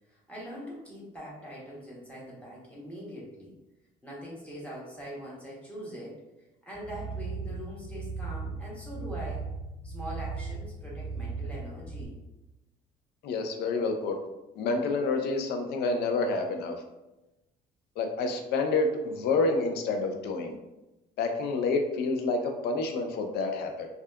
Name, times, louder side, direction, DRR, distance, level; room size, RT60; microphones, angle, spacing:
voice 1, 0.1-3.5 4.0-6.2 6.6-9.4 9.8-12.1, equal, 10° left, -5 dB, 0.9 m, -42 dB
sound 1, 6.7-12.1, right 4 dB, 35° left, 1.5 m, -37 dB
voice 2, 13.2-14.2 14.6-16.7 18.0-20.6 21.2-23.9, left 3 dB, 75° left, 4 dB, 0.4 m, -28 dB
2.6 x 2.3 x 2.2 m, 1.0 s
cardioid pair, 110°, 17 cm